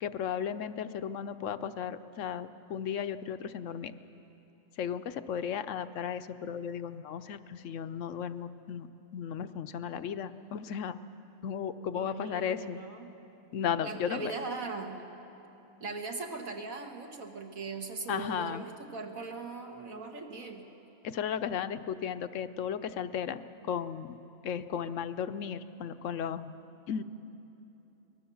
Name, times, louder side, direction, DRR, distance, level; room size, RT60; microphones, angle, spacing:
voice 1, 0.0-3.9 4.8-8.9 9.1-11.0 11.4-12.8 13.5-14.3 18.1-18.6 21.0-24.2 24.4-26.6 26.9-27.0, left 8 dB, 65° left, 11 dB, 1.0 m, -35 dB
voice 2, 11.9-13.1 13.8-15.0 15.8-20.6, right 3 dB, 70° right, 3 dB, 2.1 m, -39 dB
24.0 x 19.0 x 7.1 m, 3.0 s
omnidirectional pair, 1.5 m